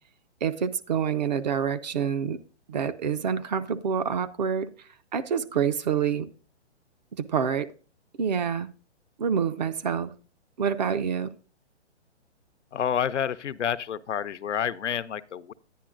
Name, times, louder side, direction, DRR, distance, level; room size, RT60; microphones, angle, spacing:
voice 1, 0.4-2.4 2.7-4.7 5.1-6.3 7.1-7.7 8.2-8.7 9.2-10.1 10.6-11.3, right 7 dB, 40° right, 0.4 m, -27 dB
voice 2, 12.7-15.5, left 8 dB, 80° left, 0.6 m, -29 dB
10.0 x 10.0 x 2.4 m
hypercardioid pair, 135°, 35 cm